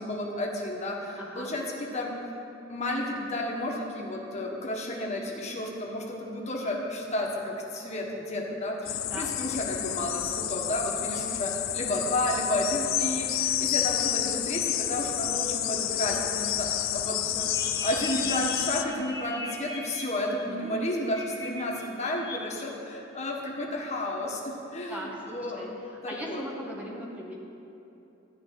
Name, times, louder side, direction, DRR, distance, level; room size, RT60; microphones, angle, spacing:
voice 1, 0.0-2.1 2.7-17.5 17.8-25.7 26.0-26.4, left 1 dB, 35° left, -1 dB, 1.6 m, -32 dB
voice 2, 1.2-1.6 9.1-9.3 20.2-20.7 24.9-25.7 26.1-27.3, equal, 5° right, -3 dB, 1.2 m, -39 dB
sound 1, 8.9-18.8, left 12 dB, 85° left, 0.5 m, -30 dB
sound 2, 17.4-20.0 20.6-21.5 21.8-22.4, left 2 dB, 15° left, 1.5 m, -39 dB
14.0 x 5.3 x 9.4 m, 2.9 s
head